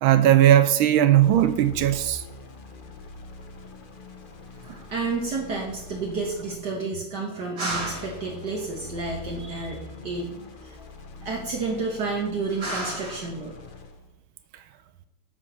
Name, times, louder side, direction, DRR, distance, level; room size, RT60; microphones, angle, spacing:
voice 1, 0.0-2.2, right 12 dB, 80° right, 1.4 m, -18 dB
sound 1, 1.2-6.8 7.7-14.1, left 4 dB, 90° left, 0.4 m, -43 dB
voice 2, 4.6-10.3 10.6-10.9 11.2-13.5, right 3 dB, 55° right, 1.9 m, -30 dB
8.3 x 4.8 x 6.1 m
omnidirectional pair, 2.3 m